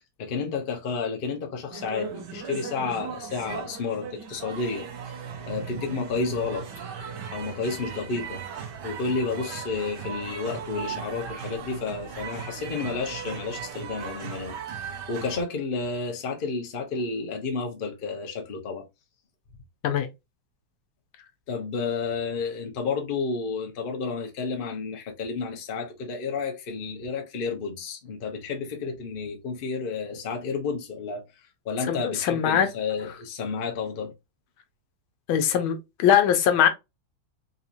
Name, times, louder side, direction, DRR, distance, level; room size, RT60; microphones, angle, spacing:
voice 1, 0.2-5.2 5.5-6.7 7.3-8.4 8.8-18.8 21.5-31.2 31.6-34.1, left 4 dB, 45° left, 0.7 m, -31 dB
sound 1, 1.7-15.4, right 7 dB, 65° right, 1.3 m, -37 dB
voice 2, 31.9-32.7 35.3-36.7, left 9 dB, 85° left, 1.5 m, -21 dB
4.0 x 2.9 x 2.5 m
omnidirectional pair, 2.2 m